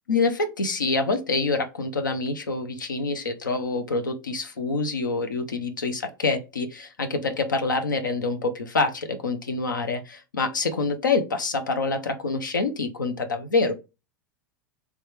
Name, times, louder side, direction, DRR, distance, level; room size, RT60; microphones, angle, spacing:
voice 1, 0.1-13.7, left 3 dB, 85° left, 7 dB, 0.7 m, -26 dB
3.4 x 3.1 x 4.8 m, 0.28 s
hypercardioid pair, 90°, 10 cm